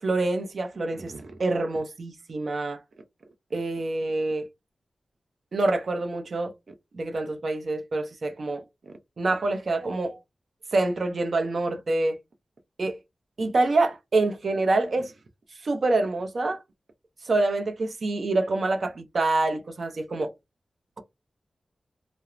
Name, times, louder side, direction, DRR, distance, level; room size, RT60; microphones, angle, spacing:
voice 1, 0.0-2.8 3.5-4.5 5.5-6.5 6.9-10.2 10.7-12.2 12.8-13.0 13.4-15.1 15.6-16.6 17.2-20.3, right 2 dB, 65° right, 0.6 m, -26 dB
2.4 x 2.1 x 3.0 m
cardioid pair, 65°, 0 cm